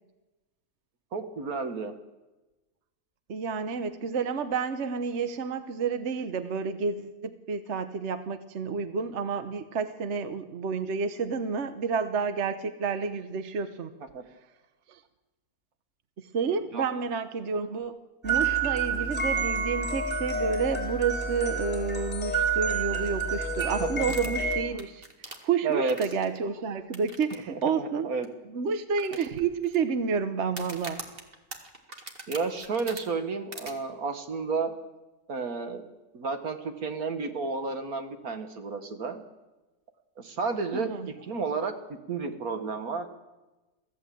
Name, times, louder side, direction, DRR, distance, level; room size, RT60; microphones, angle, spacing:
voice 1, 1.1-1.9 14.1-14.2 16.7-16.8 23.8-24.0 25.6-26.0 27.5-28.3 32.3-34.7 35.3-35.8 36.1-39.2 40.2-43.1, right 4 dB, 75° right, 7 dB, 2.1 m, -31 dB
voice 2, 3.3-13.9 14.9-15.0 16.2-28.1 28.5-31.0 40.7-41.1, right 5 dB, 55° right, 10 dB, 1.2 m, -30 dB
sound 1, 18.2-24.6, right 4 dB, 5° left, 3.7 m, -29 dB
sound 2, 24.0-26.4 26.9-27.3 27.6-27.7 28.2-28.3 29.0-29.8 30.5-33.0 33.5-33.7, right 2 dB, 40° right, 2.1 m, -41 dB
23.5 x 15.0 x 7.8 m, 1.1 s
omnidirectional pair, 1.6 m